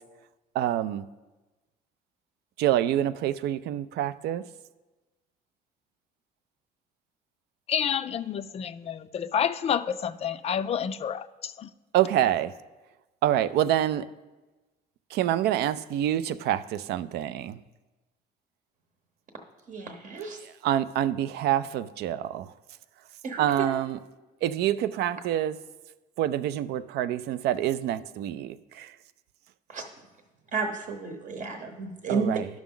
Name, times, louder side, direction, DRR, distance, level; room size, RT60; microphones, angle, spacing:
voice 1, 0.5-1.0 2.6-4.4 11.9-12.5 13.2-14.1 15.1-17.6 20.4-22.5 23.4-24.0 24.4-25.6 26.2-28.9 32.1-32.5, right 12 dB, 75° right, 0.4 m, -26 dB
voice 2, 7.7-11.7, left 8 dB, 40° left, 0.3 m, -29 dB
voice 3, 19.7-20.4 23.2-23.4 29.7-29.8 30.5-32.3, right 4 dB, 55° right, 1.0 m, -32 dB
11.0 x 6.1 x 3.8 m
cardioid pair, 110°, 17 cm